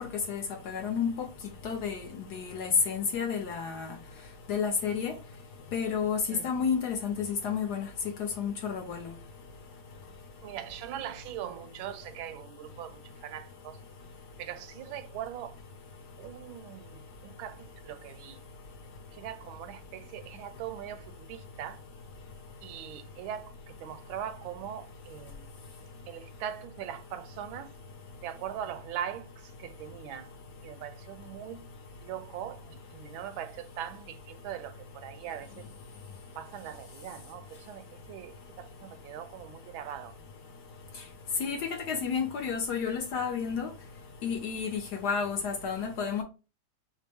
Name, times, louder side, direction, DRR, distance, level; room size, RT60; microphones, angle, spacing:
voice 1, 0.3-1.3 1.6-3.9 4.5-5.1 5.7-7.9 8.2-9.1 41.4-43.7 44.2-46.2, left 6 dB, 65° left, 1.1 m, -31 dB
voice 2, 10.4-12.9 13.2-13.7 14.4-15.5 16.2-16.8 17.4-17.5 17.9-18.4 19.2-21.0 21.3-21.8 22.6-23.5 23.8-25.3 26.1-27.7 28.2-29.2 29.8-30.3 30.6-31.6 32.0-32.6 32.9-34.7 35.0-35.5 36.4-37.4 37.7-37.8 38.1-38.3 38.8-40.1, right 10 dB, 80° right, 1.3 m, -40 dB
5.1 x 2.1 x 3.4 m
omnidirectional pair, 2.2 m